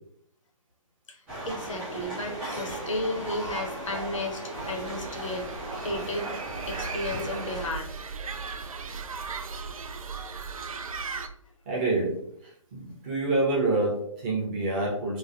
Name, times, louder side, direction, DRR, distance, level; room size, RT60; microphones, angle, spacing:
voice 1, 1.1-6.3 6.7-7.9, left 1 dB, 65° left, 1 dB, 0.7 m, -34 dB
sound 1, 1.3-7.7, right 1 dB, 5° right, 0.4 m, -36 dB
sound 2, 4.5-11.3, right 5 dB, 80° right, 0.4 m, -37 dB
voice 2, 11.7-15.2, right 2 dB, 20° right, -5 dB, 0.7 m, -27 dB
3.1 x 2.1 x 2.6 m, 0.69 s
figure-of-eight pair, 150°, 18 cm